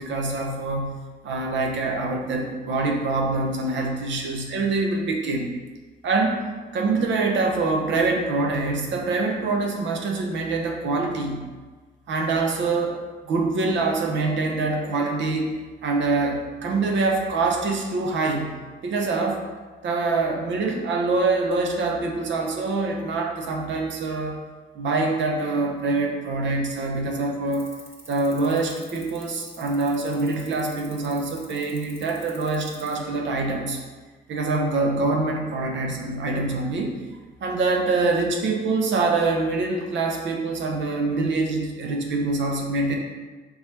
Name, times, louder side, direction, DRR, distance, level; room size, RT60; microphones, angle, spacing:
voice 1, 0.0-5.5 6.0-6.4 6.7-11.5 12.1-15.5 15.8-19.4 19.8-24.4 24.7-27.7 28.1-33.8 34.3-36.9 37.4-43.0, right 3 dB, 70° right, 1 dB, 0.7 m, -25 dB
sound 1, 27.5-32.9, right 1 dB, 10° right, 0.7 m, -46 dB
3.5 x 3.0 x 3.2 m, 1.3 s
cardioid pair, 90°, 20 cm